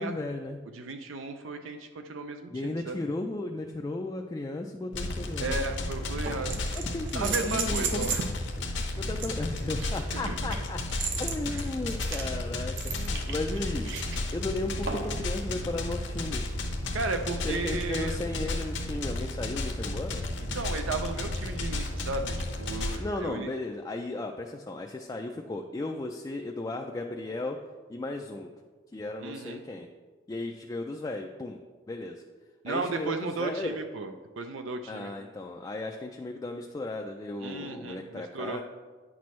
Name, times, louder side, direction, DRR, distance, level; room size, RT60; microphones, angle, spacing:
voice 1, 0.0-0.6 2.5-5.6 6.6-8.1 9.0-10.8 11.2-13.9 14.3-16.4 17.4-20.2 23.0-27.6 27.9-28.5 28.9-29.9 30.3-31.6 31.9-32.2 32.7-33.8 34.9-38.6, left 2 dB, 20° left, 2 dB, 0.3 m, -35 dB
voice 2, 0.7-3.0 5.4-6.6 7.1-8.3 10.1-10.3 11.5-11.6 16.9-18.2 20.4-23.5 29.2-29.6 32.6-35.1 37.4-38.6, right 3 dB, 85° right, 6 dB, 0.5 m, -34 dB
sound 1, 4.9-23.0, left 2 dB, 65° left, 0.8 m, -33 dB
sound 2, 5.2-5.3 6.2-8.3 9.2-14.2 14.9-15.2 16.9-17.0, right 5 dB, 70° right, 0.9 m, -35 dB
9.3 x 6.0 x 3.1 m, 1.4 s
head